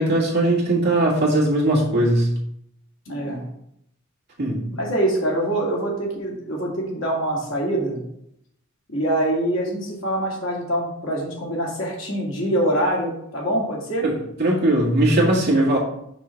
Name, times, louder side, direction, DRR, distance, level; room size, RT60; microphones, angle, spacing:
voice 1, 0.0-2.3 4.4-4.6 14.0-14.1 14.4-15.8, right 1 dB, 50° right, -3 dB, 1.9 m, -19 dB
voice 2, 3.1-3.4 4.7-8.0 8.9-14.1, right 1 dB, 65° left, -2 dB, 2.0 m, -24 dB
6.0 x 3.8 x 5.7 m, 0.75 s
head